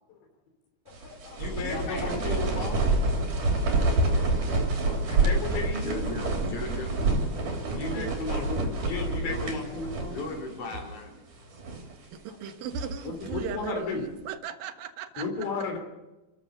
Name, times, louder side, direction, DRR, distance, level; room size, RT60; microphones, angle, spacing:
voice 1, 0.9-2.9 5.0-6.0 7.7-10.2 13.1-14.0 15.2-15.8, left 4 dB, 75° left, 3 dB, 5.4 m, -34 dB
sound 1, 0.9-10.4 10.7-10.8 11.4-11.9 12.5-13.6, right 2 dB, 45° right, 4.7 m, -28 dB
voice 2, 1.5-2.2 5.7-7.0 9.1-9.5 10.0-11.2, left 3 dB, 35° left, 0 dB, 4.9 m, -37 dB
voice 3, 12.1-15.5, right 8 dB, 65° right, 7 dB, 2.9 m, -38 dB
28.5 x 14.5 x 6.7 m, 1.0 s
omnidirectional pair, 5.1 m